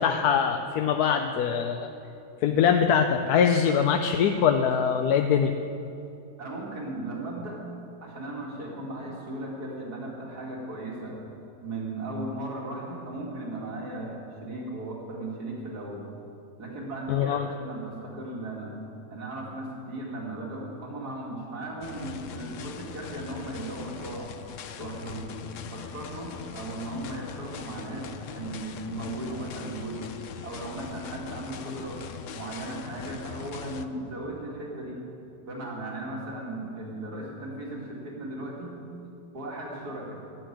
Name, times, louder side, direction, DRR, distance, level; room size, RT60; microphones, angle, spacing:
voice 1, 0.0-1.9 2.4-5.5 17.1-17.5, left 7 dB, 80° left, 5 dB, 1.2 m, -23 dB
voice 2, 6.4-7.6 8.0-11.2 11.6-16.1 16.6-18.7 19.1-24.3 24.8-25.3 25.7-30.0 30.4-32.0 32.3-35.0 35.4-38.8 39.3-40.2, right 2 dB, 85° right, -2 dB, 2.8 m, -36 dB
sound 1, 21.8-33.9, left 7 dB, 65° left, 0.9 m, -41 dB
14.0 x 7.9 x 9.9 m, 2.7 s
omnidirectional pair, 1.7 m